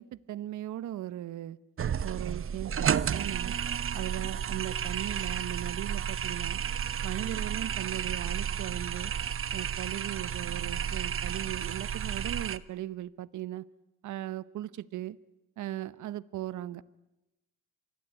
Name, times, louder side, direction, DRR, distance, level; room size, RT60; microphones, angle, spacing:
voice 1, 0.0-1.6 2.0-3.6 3.9-6.6 7.0-9.1 9.5-13.7 14.0-15.2 15.6-16.8, right 13 dB, 75° right, 18 dB, 1.0 m, -38 dB
sound 1, 1.8-12.6, right 8 dB, 45° right, 1.1 m, -32 dB
26.5 x 21.0 x 10.0 m, 0.98 s
cardioid pair, 90°, 30 cm